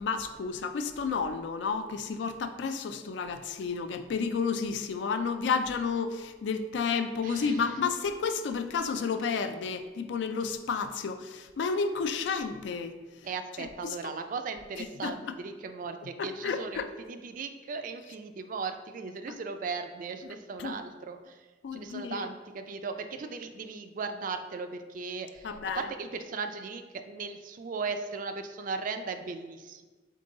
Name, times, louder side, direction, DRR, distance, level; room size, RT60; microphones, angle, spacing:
voice 1, 0.0-13.0 13.6-14.0 14.8-15.1 16.2-16.9 20.6-20.8 21.6-22.3 25.4-25.8, left 5 dB, 70° left, 8 dB, 0.3 m, -31 dB
voice 2, 7.2-7.7 13.2-29.8, right 4 dB, 45° right, 8 dB, 0.3 m, -37 dB
3.8 x 3.7 x 3.7 m, 1.3 s
head